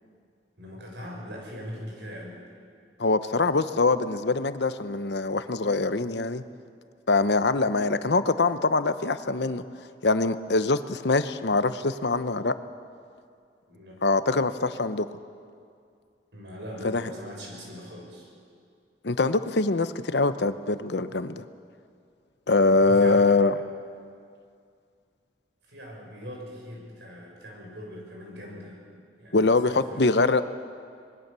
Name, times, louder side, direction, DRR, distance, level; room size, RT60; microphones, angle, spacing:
voice 1, 0.6-2.4 13.7-13.9 16.3-18.3 22.8-23.3 25.7-28.8 29.2-30.0, equal, 75° right, -1 dB, 6.7 m, -41 dB
voice 2, 3.0-6.4 7.1-9.6 10.0-12.5 14.0-15.1 16.9-17.0 19.0-21.4 22.5-23.5 29.3-30.4, left 3 dB, 65° left, 12 dB, 0.9 m, -23 dB
25.5 x 21.0 x 6.9 m, 2.3 s
head